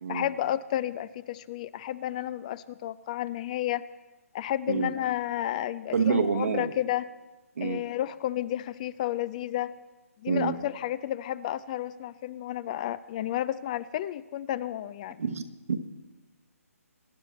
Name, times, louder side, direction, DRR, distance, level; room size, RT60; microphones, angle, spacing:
voice 1, 0.1-3.8 4.3-7.1 7.6-9.8 10.2-15.2, left 12 dB, 30° left, 18 dB, 0.4 m, -31 dB
voice 2, 5.9-6.7 7.6-7.8 10.3-10.5 15.2-15.4 15.7-15.8, right 5 dB, 65° right, 6 dB, 1.4 m, -27 dB
23.0 x 10.5 x 4.3 m, 1.2 s
figure-of-eight pair, 150°, 8 cm